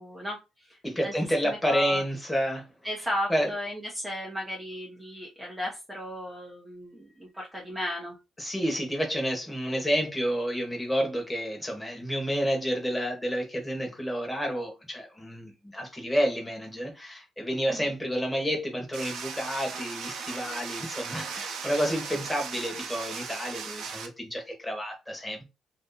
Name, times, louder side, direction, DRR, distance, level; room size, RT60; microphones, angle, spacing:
voice 1, 0.0-1.1 1.4-2.0 2.8-8.2 17.7-17.9, equal, 5° right, 1.0 m, -35 dB
voice 2, 0.8-2.7 3.3-3.5 8.4-25.4, equal, 10° left, 1.5 m, -30 dB
sound 1, 18.9-24.1, right 5 dB, 75° right, 0.7 m, -37 dB
2.8 x 2.5 x 3.9 m
cardioid pair, 90°, 0 cm